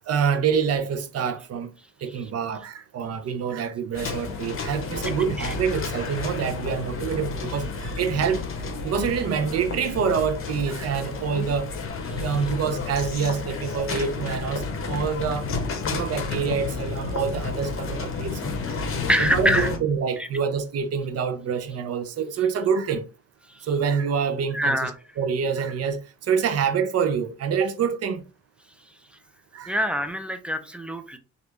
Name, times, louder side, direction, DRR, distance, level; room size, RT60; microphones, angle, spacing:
voice 1, 0.1-1.7 2.0-8.4 8.8-11.7 12.2-15.5 15.9-18.5 19.2-23.1 23.6-24.9 25.2-28.2 29.5-29.7, right 6 dB, 55° right, 0.6 m, -26 dB
sound 1, 3.9-19.8, left 4 dB, 45° left, 0.8 m, -31 dB
voice 2, 19.1-19.7 20.2-20.3 23.5-23.6 24.5-24.9 29.7-31.2, equal, 5° right, 0.5 m, -25 dB
3.2 x 2.5 x 3.1 m
cardioid pair, 90°, 30 cm